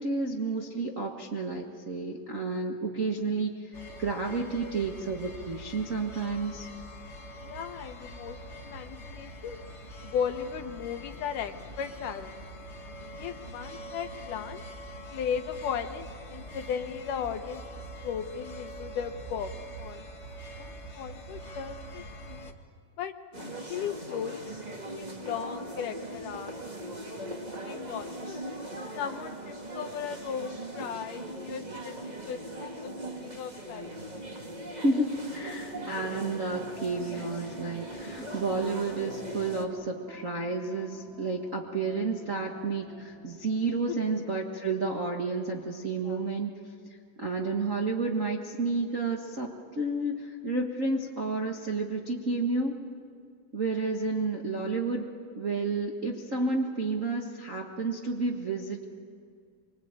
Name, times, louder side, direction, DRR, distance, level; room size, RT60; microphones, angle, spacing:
voice 1, 0.0-3.7 4.0-6.7 34.8-46.5 46.8-52.8 53.5-55.1 55.3-58.8, right 3 dB, 45° right, -1 dB, 1.0 m, -31 dB
sound 1, 3.7-22.5, right 1 dB, 35° left, 1.1 m, -44 dB
voice 2, 7.4-9.6 10.0-12.3 13.1-14.6 15.1-19.5 19.8-20.1 20.6-22.5 23.0-24.6 25.0-26.5 27.6-28.4 28.9-33.9 43.9-44.0 46.0-46.2, left 7 dB, 70° left, 7 dB, 2.3 m, -36 dB
sound 2, 23.3-39.7, right 1 dB, 20° right, 1.1 m, -40 dB
sound 3, 35.1-44.2, left 1 dB, ahead, 1.8 m, -51 dB
25.0 x 25.0 x 8.9 m, 2.2 s
omnidirectional pair, 4.2 m